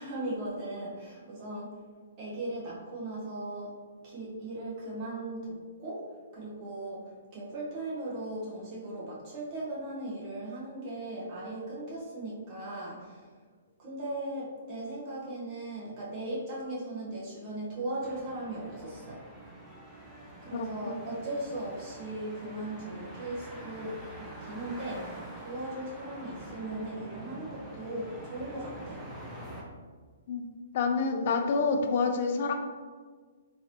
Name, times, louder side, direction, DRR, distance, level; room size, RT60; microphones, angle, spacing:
voice 1, 0.0-1.8 2.2-3.7 4.0-13.3 13.8-19.2 20.4-29.0, right 1 dB, 35° right, -6 dB, 1.1 m, -38 dB
sound 1, 18.0-29.6, right 1 dB, ahead, 0.5 m, -46 dB
voice 2, 30.7-32.5, left 4 dB, 50° left, 4 dB, 0.4 m, -27 dB
3.7 x 3.0 x 2.9 m, 1.5 s
hypercardioid pair, 150°, 0 cm